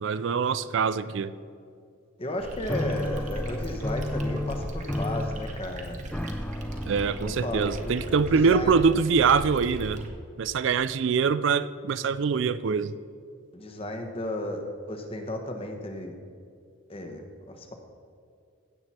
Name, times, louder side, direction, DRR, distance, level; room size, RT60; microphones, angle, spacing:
voice 1, 0.0-1.3 6.9-10.1 10.4-12.9, right 5 dB, 65° right, 15 dB, 0.4 m, -24 dB
voice 2, 2.2-6.0 7.1-8.8 13.5-16.1 16.9-17.7, left 1 dB, 25° left, 4 dB, 1.2 m, -34 dB
sound 1, 2.4-10.1, right 1 dB, 35° right, 1.2 m, -38 dB
sound 2, 2.7-9.2, left 1 dB, 5° left, 0.4 m, -34 dB
16.0 x 7.9 x 4.3 m, 2.4 s
head